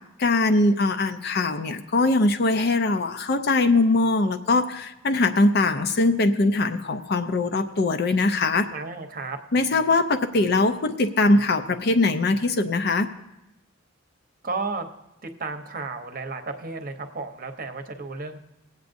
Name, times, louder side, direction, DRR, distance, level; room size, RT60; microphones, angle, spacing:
voice 1, 0.2-8.7 9.5-13.1, left 2 dB, 50° left, 7 dB, 0.5 m, -21 dB
voice 2, 8.7-9.4 14.4-14.9 15.4-18.4, right 3 dB, 45° right, 7 dB, 0.8 m, -33 dB
20.0 x 8.1 x 2.6 m, 0.92 s
head